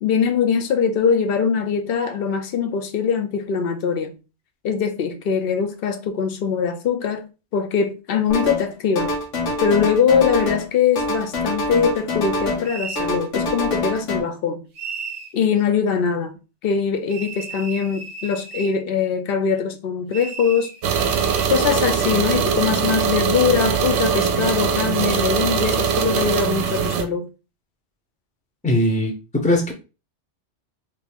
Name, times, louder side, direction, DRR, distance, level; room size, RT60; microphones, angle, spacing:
voice 1, 0.0-4.2 4.6-9.1 9.6-14.6 15.3-16.4 16.6-20.7 21.5-27.3, left 6 dB, 60° left, 0.7 m, -22 dB
sound 1, 8.3-8.7 8.9-10.7 10.9-12.7 13.0-14.2, left 2 dB, 85° left, 1.3 m, -25 dB
sound 2, 12.6-13.1 14.7-15.3 17.1-18.8 20.1-21.5, right 5 dB, 50° right, 0.5 m, -35 dB
sound 3, 20.8-27.0, right 7 dB, 70° right, 0.8 m, -21 dB
voice 2, 28.6-29.7, left 1 dB, 10° left, 0.5 m, -20 dB
3.0 x 2.4 x 3.5 m
omnidirectional pair, 1.2 m